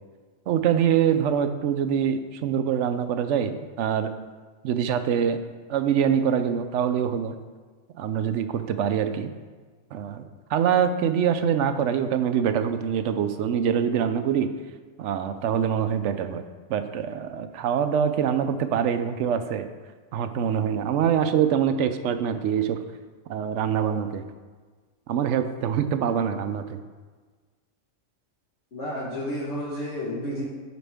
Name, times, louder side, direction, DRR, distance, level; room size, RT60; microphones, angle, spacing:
voice 1, 0.5-4.1 4.6-5.4 5.7-7.4 7.9-9.3 9.9-14.5 15.0-16.4 16.7-19.7 20.1-22.8 23.3-24.2 25.1-26.8, right 8 dB, 75° right, 9 dB, 0.9 m, -24 dB
voice 2, 28.7-30.4, equal, 65° left, -7 dB, 1.5 m, -31 dB
9.1 x 6.0 x 3.5 m, 1.4 s
omnidirectional pair, 1.3 m